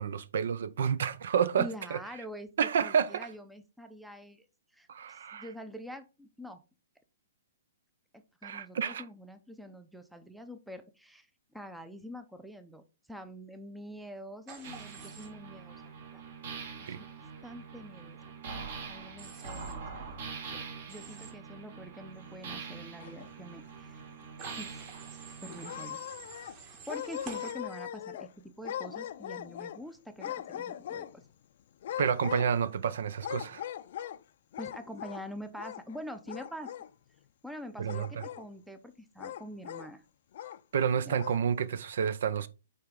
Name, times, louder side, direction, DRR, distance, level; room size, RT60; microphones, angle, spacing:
voice 1, 0.0-2.0 2.6-3.3 4.9-5.5 8.4-9.0 16.9-17.0 32.0-33.6 37.8-38.2 40.7-42.5, right 7 dB, 70° right, 0.6 m, -29 dB
voice 2, 1.6-2.5 2.8-4.5 4.7-6.6 8.4-11.3 11.5-15.8 16.1-16.2 16.8-17.1 17.4-18.2 18.9-20.2 20.5-24.0 24.6-24.8 25.4-26.0 26.9-31.2 34.6-36.7 37.4-40.0 41.1-41.2, equal, ahead, 0.6 m, -45 dB
Human voice / Train, 14.5-15.3 19.2-19.7 20.9-21.3 24.4-27.5, right 5 dB, 30° right, 1.7 m, -48 dB
sound 1, 14.6-25.9, right 5 dB, 50° right, 1.9 m, -44 dB
sound 2, 22.6-23.6 24.0-24.1 24.5-24.6 25.5-26.6 26.9-28.3 28.6-29.8 30.2-31.3 31.8-32.8 33.2-34.2 34.5-35.2 35.5-36.0 36.3-36.9 37.9-38.5 39.2-39.9 40.3-40.6 41.1-41.4, left 11 dB, 55° left, 0.4 m, -40 dB
8.7 x 3.4 x 3.7 m
hypercardioid pair, 155°, 0 cm